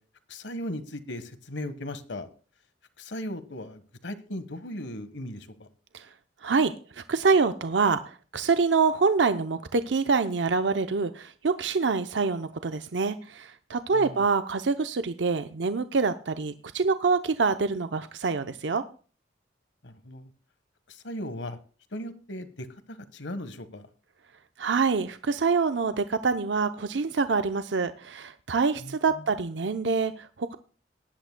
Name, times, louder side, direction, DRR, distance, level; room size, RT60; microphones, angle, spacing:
voice 1, 0.3-2.3 3.0-5.7 13.9-14.2 19.8-20.3 20.9-21.6 21.9-23.9 28.8-29.3, left 1 dB, 75° left, 11 dB, 1.4 m, -37 dB
voice 2, 6.4-18.8 24.6-30.5, right 4 dB, 75° right, 10 dB, 0.7 m, -26 dB
19.5 x 11.0 x 2.2 m, 0.39 s
head